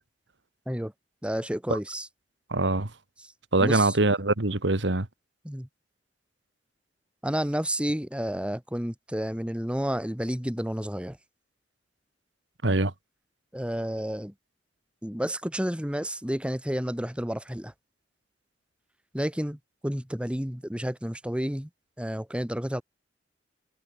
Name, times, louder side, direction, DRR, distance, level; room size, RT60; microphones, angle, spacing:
voice 1, 1.2-2.1 3.6-4.0 5.4-5.7 7.2-11.2 13.5-14.3 15.0-17.7 19.1-21.7 22.0-22.8, equal, 5° right, 1.9 m, -30 dB
voice 2, 2.5-2.9 3.5-5.1 12.6-12.9, right 2 dB, 80° right, 1.8 m, -23 dB
head